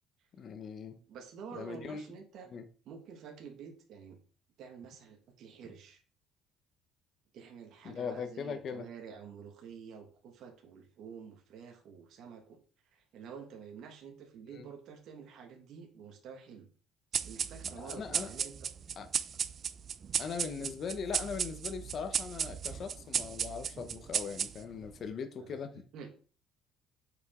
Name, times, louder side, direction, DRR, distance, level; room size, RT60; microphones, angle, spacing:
voice 1, 0.4-1.0 1.5-2.0 2.5-2.6 7.8-8.9 14.5-14.7 17.7-18.3 19.0-19.1 20.2-25.8, left 6 dB, 40° left, 0.8 m, -40 dB
voice 2, 0.9-2.6 2.8-4.2 4.6-6.0 7.3-12.6 12.9-16.7 17.1-18.7 20.5-20.7 25.4-26.1, right 6 dB, 55° right, 1.5 m, -49 dB
sound 1, 17.1-24.9, right 7 dB, 35° right, 0.4 m, -35 dB
8.2 x 5.1 x 3.7 m
cardioid pair, 155°, 0 cm